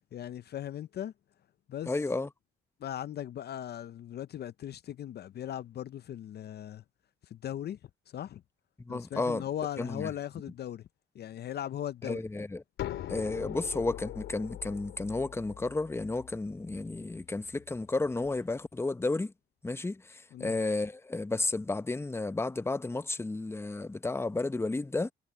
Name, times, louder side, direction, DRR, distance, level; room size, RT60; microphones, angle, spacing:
voice 1, 0.1-1.1 1.7-1.9 2.8-6.8 7.3-7.8 8.1-8.4 8.9-10.8 11.1-12.2 20.3-20.5, left 11 dB, 55° left, 0.5 m, -38 dB
voice 2, 1.9-2.3 8.8-9.4 9.8-10.1 12.0-12.6 13.1-19.3 19.6-25.1, left 2 dB, 10° left, 0.8 m, -32 dB
sound 1, 12.8-18.4, left 12 dB, 80° left, 3.5 m, -42 dB
cardioid pair, 90°, 20 cm